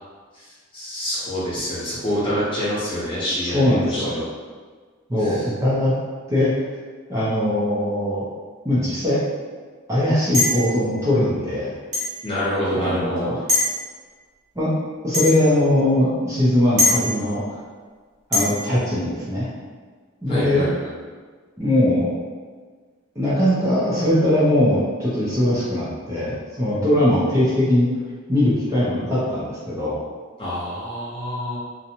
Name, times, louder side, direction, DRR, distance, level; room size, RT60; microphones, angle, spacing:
voice 1, 0.3-4.3 5.2-5.5 12.2-13.4 20.3-20.9 30.4-31.6, equal, 25° left, -9 dB, 0.9 m, -27 dB
voice 2, 3.4-4.1 5.1-5.9 6.3-6.6 7.1-8.3 8.6-9.2 9.9-11.8 12.7-13.4 14.6-14.7 15.0-17.6 18.3-19.5 20.2-20.7 21.6-22.2 23.2-27.9 28.3-30.0, left 1 dB, 15° right, -9 dB, 0.6 m, -20 dB
sound 1, 10.3-10.7 11.9-12.1 13.5-13.7 15.1-15.4 16.8-17.0 18.3-18.5, left 2 dB, 40° right, 1.0 m, -20 dB
2.6 x 2.2 x 2.8 m, 1.5 s
head